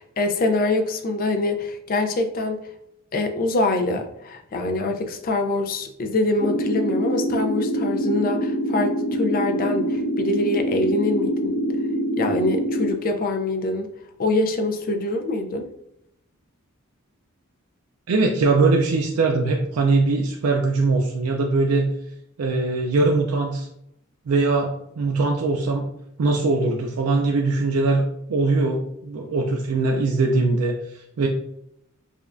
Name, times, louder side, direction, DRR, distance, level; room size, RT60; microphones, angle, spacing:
voice 1, 0.0-2.6 3.1-11.6 12.2-13.9 14.2-15.7, left 2 dB, 40° left, 6 dB, 0.4 m, -24 dB
sound 1, 6.4-12.9, equal, 15° left, 1.0 m, -25 dB
voice 2, 18.1-21.9 22.4-23.7 24.3-25.9 26.2-28.0 28.3-31.3, right 3 dB, 90° right, 1 dB, 0.4 m, -21 dB
4.9 x 2.3 x 2.4 m, 0.76 s
head